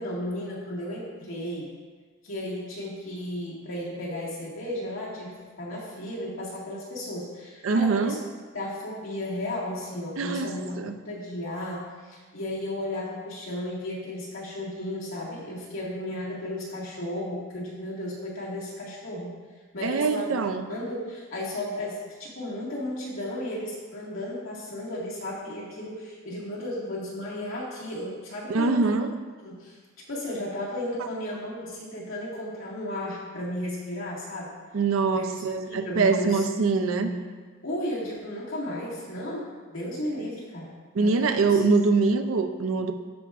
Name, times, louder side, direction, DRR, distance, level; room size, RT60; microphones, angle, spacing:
voice 1, 0.0-1.7 2.2-8.2 8.5-19.4 19.7-20.4 20.7-28.9 29.4-29.8 30.1-34.5 35.1-36.4 36.7-37.3 37.6-41.6, left 1 dB, 75° left, -6 dB, 1.9 m, -34 dB
voice 2, 7.6-8.2 10.2-10.9 19.8-20.7 28.5-29.1 34.7-37.1 40.9-42.9, right 4 dB, 85° right, 7 dB, 0.5 m, -24 dB
12.0 x 4.7 x 2.5 m, 1.5 s
head